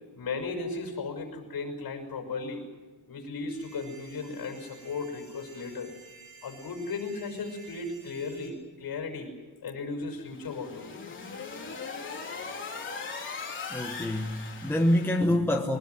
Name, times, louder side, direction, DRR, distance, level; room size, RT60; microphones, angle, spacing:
voice 1, 0.1-2.6 3.1-5.9 6.4-9.3 9.6-10.9 12.3-12.4, left 3 dB, 45° left, 5.9 m, -36 dB
sound 1, 3.5-8.5, right 4 dB, 70° right, 7.0 m, -53 dB
sound 2, 10.2-15.2, left 5 dB, 25° left, 3.8 m, -39 dB
voice 2, 13.7-15.8, left 1 dB, 5° left, 1.1 m, -26 dB
23.5 x 20.0 x 9.5 m
cardioid pair, 160°, 48 cm